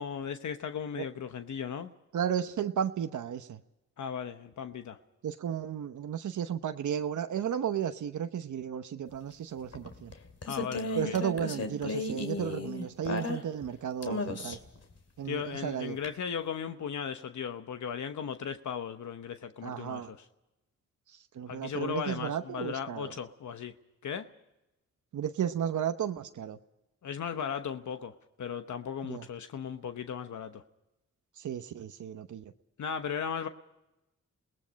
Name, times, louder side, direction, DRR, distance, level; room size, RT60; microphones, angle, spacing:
voice 1, 0.0-1.9 4.0-5.0 10.5-11.2 15.2-20.3 21.5-23.7 24.0-24.3 27.0-30.6 32.8-33.5, left 7 dB, 75° left, 1.0 m, -37 dB
voice 2, 2.1-3.6 5.2-10.1 11.0-14.6 15.2-16.0 19.6-20.1 21.3-23.1 25.1-26.6 29.0-29.2 31.4-32.4, right 9 dB, 80° right, 0.9 m, -34 dB
sound 1, 9.7-13.7 14.0-14.8 16.0-16.1, left 2 dB, 55° left, 2.3 m, -34 dB
28.5 x 19.0 x 5.2 m
cardioid pair, 80°, 30 cm